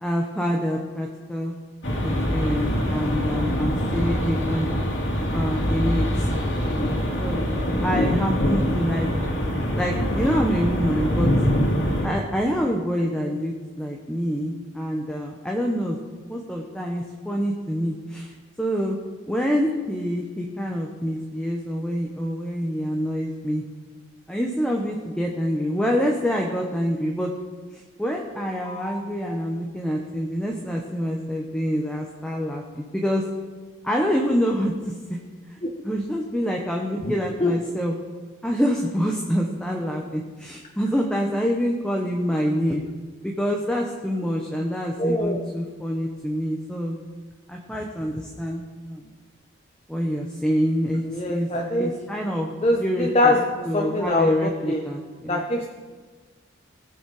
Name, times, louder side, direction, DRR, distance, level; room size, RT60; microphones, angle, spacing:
voice 1, 0.0-1.5 2.0-4.7 5.3-6.3 6.6-7.4 7.8-9.1 9.7-11.3 12.0-16.0 16.3-18.3 18.6-19.0 19.3-23.6 24.3-27.3 28.0-33.2 33.8-34.7 35.1-35.2 35.5-35.6 35.8-37.9 38.4-42.8 43.2-47.0 47.5-49.1 49.9-51.5 51.8-52.5 52.8-53.4 53.6-55.4, equal, 5° left, 0 dB, 0.9 m, -26 dB
sound 1, 1.8-12.1, equal, 65° left, 2.4 m, -24 dB
voice 2, 45.0-45.4 51.1-51.9 52.6-54.8 55.3-55.7, left 1 dB, 30° left, 1 dB, 0.9 m, -23 dB
19.0 x 7.1 x 4.8 m, 1.4 s
head